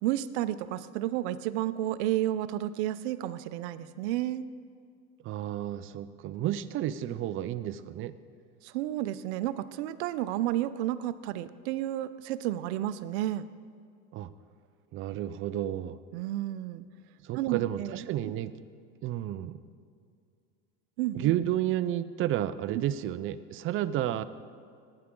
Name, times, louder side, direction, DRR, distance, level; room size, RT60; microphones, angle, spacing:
voice 1, 0.0-4.4 8.6-13.5 16.1-16.8 17.3-17.9 18.2-18.3 21.0-21.3 22.7-22.8, right 13 dB, 80° right, 13 dB, 0.7 m, -31 dB
voice 2, 5.2-8.2 14.1-14.3 14.9-16.0 17.2-18.5 19.0-19.5 21.1-24.2, right 12 dB, 40° right, 13 dB, 0.6 m, -31 dB
18.0 x 9.8 x 3.8 m, 2.3 s
supercardioid pair, 130°, 33 cm